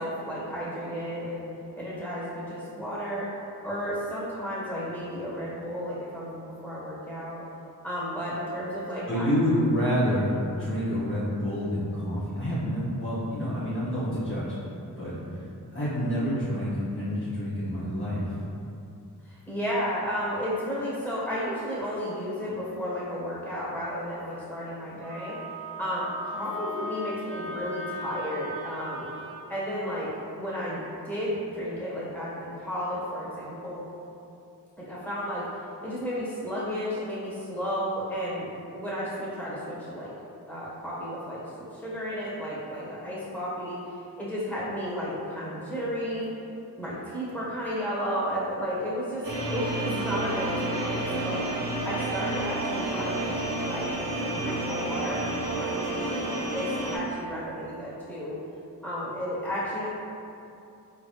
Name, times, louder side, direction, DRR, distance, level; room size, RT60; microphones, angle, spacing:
voice 1, 0.0-1.5 1.7-3.3 3.6-6.4 6.6-7.4 7.8-9.3 19.2-25.4 25.8-29.1 29.5-30.1 30.3-33.8 34.8-35.4 35.8-40.1 40.5-41.4 41.7-46.3 46.8-51.4 51.8-53.9 54.2-55.3 55.5-58.4 58.8-59.9, equal, 5° left, -9 dB, 1.5 m, -33 dB
voice 2, 9.1-14.5 15.0-15.1 15.7-18.3, equal, 30° left, -11 dB, 0.9 m, -28 dB
Wind instrument woodwind instrument, 25.0-29.4, equal, 35° right, 0.5 m, -38 dB
sound 1, 49.2-57.0, right 2 dB, 55° right, 1.2 m, -30 dB
3.8 x 3.3 x 2.4 m, 2.7 s
cardioid pair, 60°, 39 cm